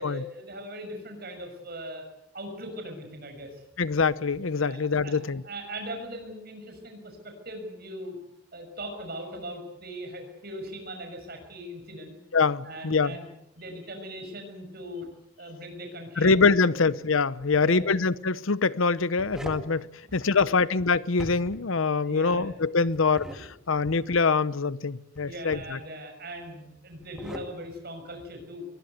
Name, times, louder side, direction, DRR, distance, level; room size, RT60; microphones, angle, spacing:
voice 1, 0.0-2.0 2.3-3.6 4.6-8.2 8.5-12.1 12.6-13.3 13.6-15.1 15.4-16.3 16.7-16.8 17.5-18.0 20.1-20.6 22.0-22.6 23.4-23.5 25.2-28.6, equal, 50° right, 6.4 m, -40 dB
voice 2, 3.8-5.4 12.3-13.1 16.2-19.9 20.1-25.8, left 4 dB, 70° left, 0.8 m, -24 dB
sound 1, 17.4-17.6 18.9-19.7 21.1-21.7 22.9-23.4 25.2-25.8 26.9-27.5, equal, 5° right, 2.1 m, -41 dB
22.5 x 19.5 x 8.1 m
head